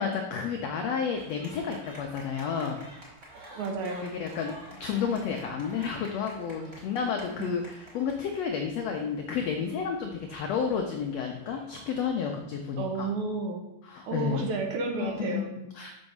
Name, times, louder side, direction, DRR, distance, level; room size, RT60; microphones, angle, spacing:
voice 1, 0.0-2.9 4.0-4.5 4.8-13.1 13.8-14.5 15.0-16.0, left 6 dB, 80° left, 3 dB, 1.5 m, -31 dB
sound 1, 1.1-12.0, right 1 dB, 20° right, 2.8 m, -50 dB
voice 2, 3.3-4.1 12.8-13.6 14.1-15.5, right 3 dB, 70° right, 3 dB, 2.3 m, -32 dB
6.2 x 5.9 x 6.5 m, 0.90 s
omnidirectional pair, 3.9 m